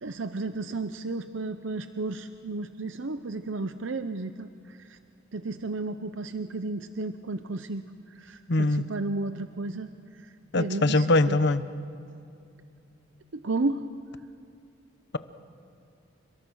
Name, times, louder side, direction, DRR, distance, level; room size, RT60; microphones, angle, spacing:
voice 1, 0.0-5.0 5.3-7.8 8.1-11.4 13.3-13.8, right 3 dB, 70° right, 9 dB, 0.8 m, -33 dB
voice 2, 8.5-8.9 10.5-11.6, left 2 dB, 60° left, 12 dB, 1.0 m, -22 dB
30.0 x 26.0 x 6.4 m, 2.6 s
head